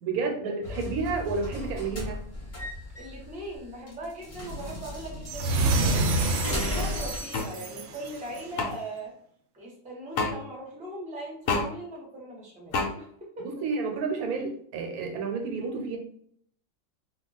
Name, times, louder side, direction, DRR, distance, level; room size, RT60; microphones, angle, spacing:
voice 1, 0.0-2.2 6.5-7.0 13.4-16.0, right 4 dB, 85° right, 3 dB, 1.1 m, -31 dB
sound 1, 0.6-7.2, left 2 dB, 40° left, 0.9 m, -36 dB
voice 2, 2.9-9.1 9.5-13.5, right 1 dB, 10° right, -3 dB, 0.6 m, -40 dB
sound 2, 5.3-8.6, right 2 dB, 65° right, 0.8 m, -28 dB
sound 3, 7.3-7.5 8.6-8.7 10.2-10.3 11.5-11.7 12.7-12.9, left 4 dB, 70° left, 0.9 m, -26 dB
2.3 x 2.2 x 3.9 m, 0.63 s
omnidirectional pair, 1.5 m